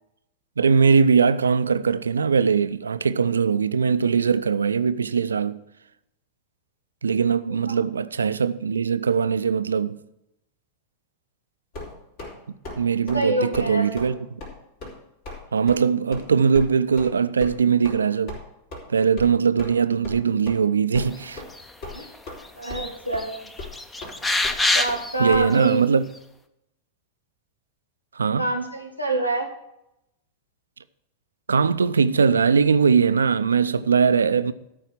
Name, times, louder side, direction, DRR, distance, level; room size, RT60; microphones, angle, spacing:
voice 1, 0.6-5.6 7.0-10.0 12.8-14.4 15.5-18.4 18.9-21.4 22.7-22.8 25.2-26.0 28.1-28.5 31.5-34.5, right 6 dB, 70° right, 0.5 m, -21 dB
sound 1, 11.7-12.3 12.6-12.8 13.1-13.3 13.5-13.7 14.0-14.1 14.4-14.5 14.8-15.0 15.3-15.4 15.7-15.8 16.1-16.3 16.5-16.7 17.0-17.1 17.4-17.5 17.8-18.0 18.3-18.4 18.7-18.8 19.2-19.3 19.6-19.8 20.0-20.2 20.5-20.6 20.9-21.1 21.4-21.5 21.8-22.4 22.7-22.9 23.1-23.2 23.6-23.7 24.0-24.1 24.4-24.6 24.9-25.0 25.3-25.4, left 3 dB, 50° left, 4.0 m, -37 dB
voice 2, 13.1-14.1 21.9-22.1 22.5-23.5 24.7-25.9 28.4-29.5, right 2 dB, 90° left, 1.7 m, -26 dB
sound 2, 21.6-22.2 22.5-22.9 23.2-25.2 25.6-25.7, left 2 dB, 10° left, 0.8 m, -25 dB
13.0 x 4.9 x 7.4 m
figure-of-eight pair, 90°, 0 cm